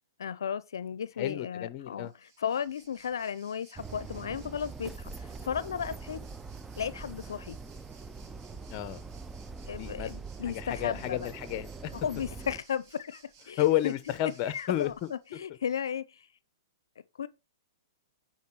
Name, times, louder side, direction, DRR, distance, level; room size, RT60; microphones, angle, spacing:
voice 1, 0.2-6.2 6.8-7.6 9.7-11.3 11.9-13.9 14.5-16.3 17.2-17.3, left 8 dB, 80° left, 0.5 m, -35 dB
voice 2, 1.2-2.1 8.7-9.0 9.7-10.1 10.5-11.9 13.6-14.9, left 13 dB, 35° left, 0.8 m, -31 dB
Waves surf, 2.0-15.4, right 6 dB, 55° right, 2.9 m, -60 dB
sound 1, 3.8-12.6, right 4 dB, 10° right, 0.4 m, -43 dB
9.4 x 4.7 x 4.7 m
hypercardioid pair, 140°, 2 cm